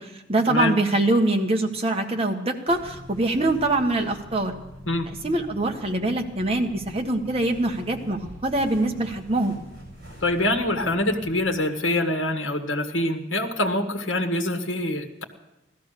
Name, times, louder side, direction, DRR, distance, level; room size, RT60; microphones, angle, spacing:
voice 1, 0.3-4.5 5.2-9.6, right 2 dB, 30° right, 3 dB, 1.4 m, -24 dB
sound 1, 2.7-11.5, equal, 50° right, 7.3 m, -44 dB
voice 2, 10.2-15.2, left 1 dB, 80° left, 4 dB, 1.6 m, -25 dB
16.5 x 13.0 x 6.7 m, 0.92 s
head